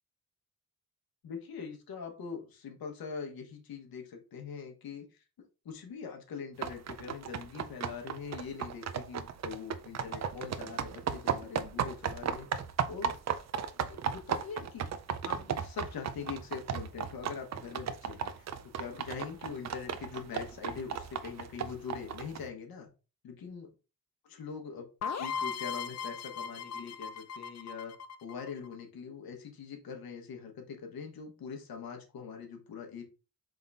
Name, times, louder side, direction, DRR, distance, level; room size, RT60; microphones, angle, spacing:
voice 1, 1.2-12.5 12.9-13.1 13.9-14.9 15.2-22.9 23.2-23.7 24.3-24.8 25.2-27.9 28.2-33.0, left 6 dB, 80° left, 3 dB, 1.2 m, -43 dB
sound 1, 6.6-22.5, right 7 dB, 50° right, 0.5 m, -35 dB
sound 2, 25.0-28.7, left 6 dB, 50° left, 0.5 m, -38 dB
3.9 x 3.6 x 3.5 m, 0.32 s
cardioid pair, 85°, 35 cm